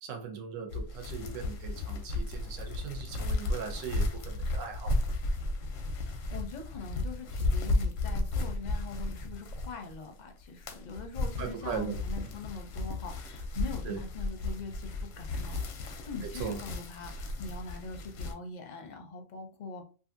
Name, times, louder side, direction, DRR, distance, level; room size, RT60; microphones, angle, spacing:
voice 1, 0.0-5.0 11.4-12.0 12.2-12.3 13.8-14.0 16.4-16.6, right 7 dB, 85° right, 1.0 m, -39 dB
sound 1, 0.7-10.1 10.4-18.3, left 2 dB, 85° left, 1.0 m, -34 dB
voice 2, 6.1-19.8, left 4 dB, 50° left, 0.5 m, -43 dB
2.6 x 2.5 x 2.5 m
omnidirectional pair, 1.3 m